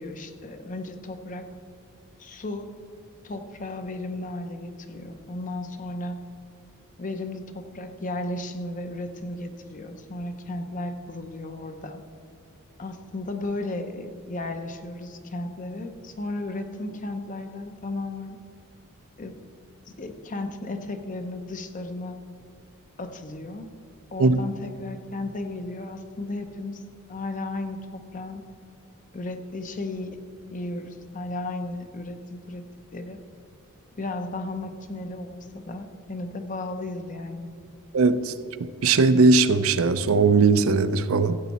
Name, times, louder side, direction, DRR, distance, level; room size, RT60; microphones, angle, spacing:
voice 1, 0.0-1.5 2.2-2.7 3.2-6.2 7.0-12.0 12.8-18.4 19.2-19.3 20.0-22.2 23.0-23.7 24.1-28.4 29.1-30.2 30.5-32.6 32.9-33.2 34.0-37.5, left 2 dB, 35° left, 7 dB, 0.7 m, -34 dB
voice 2, 37.9-38.3 38.6-41.4, right 4 dB, 70° right, 12 dB, 0.5 m, -19 dB
14.5 x 8.1 x 4.2 m, 2.4 s
head